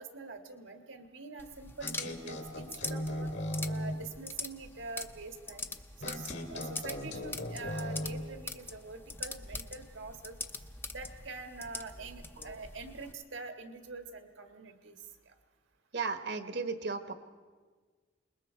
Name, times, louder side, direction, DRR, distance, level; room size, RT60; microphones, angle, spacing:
voice 1, 0.0-3.3 3.7-5.6 6.0-10.4 10.9-15.3, right 4 dB, 80° right, 6 dB, 1.8 m, -45 dB
sound 1, 1.4-13.1, left 3 dB, 10° left, 0.7 m, -44 dB
sound 2, 1.8-4.1 6.0-8.3, left 1 dB, 65° left, 2.4 m, -37 dB
voice 2, 15.9-17.1, right 4 dB, 60° right, 9 dB, 1.2 m, -35 dB
27.0 x 21.0 x 4.5 m, 1.5 s
head